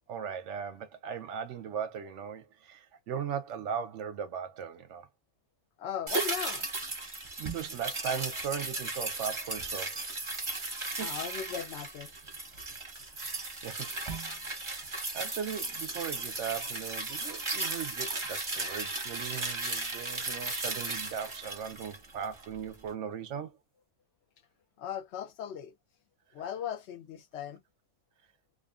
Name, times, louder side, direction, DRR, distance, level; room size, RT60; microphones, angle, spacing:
voice 1, 0.1-5.1 7.4-10.1 11.0-11.1 13.6-13.9 14.6-23.6, right 7 dB, 65° right, 0.8 m, -38 dB
voice 2, 5.8-6.7 11.0-12.1 24.8-25.7 26.3-27.6, left 9 dB, 60° left, 0.9 m, -38 dB
sound 1, 6.1-22.6 22.9-23.0, right 3 dB, 25° right, 0.7 m, -36 dB
2.5 x 2.5 x 2.3 m
omnidirectional pair, 1.4 m